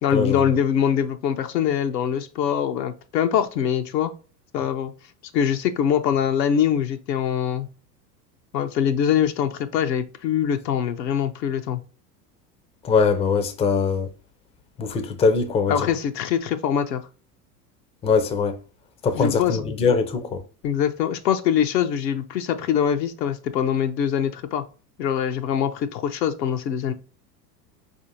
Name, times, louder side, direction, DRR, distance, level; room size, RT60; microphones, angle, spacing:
voice 1, 0.0-4.1 4.5-4.9 5.3-7.7 8.5-11.8 15.7-17.0 19.1-19.6 20.6-24.6 25.0-26.9, left 8 dB, 90° left, 0.7 m, -23 dB
voice 2, 12.8-14.1 14.8-15.9 18.0-18.6 19.0-20.4, left 5 dB, 15° left, 0.4 m, -22 dB
4.4 x 2.7 x 2.7 m
hypercardioid pair, 90°, 49 cm